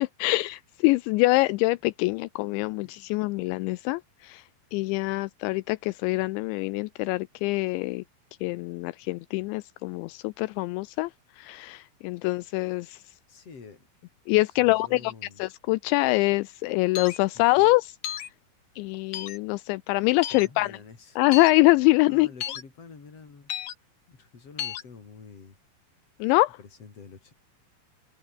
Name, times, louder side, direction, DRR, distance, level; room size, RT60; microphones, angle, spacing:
voice 1, 0.0-4.4 4.7-8.0 8.4-11.1 11.4-13.0 14.3-15.1 15.4-17.9 18.8-20.7 21.2-22.3 26.2-26.6, left 21 dB, 85° left, 2.9 m, -24 dB
voice 2, 2.8-3.2 13.3-13.9 14.3-15.5 17.3-17.7 20.3-21.2 22.1-23.7 24.1-25.6 26.6-27.3, left 5 dB, 35° left, 5.1 m, -48 dB
sound 1, 17.0-17.2 18.0-18.3 19.1-19.4 20.2-20.5 21.3-21.5 22.4-22.6 23.5-23.7 24.6-24.8, left 11 dB, 60° left, 3.2 m, -33 dB
omnidirectional pair, 5.3 m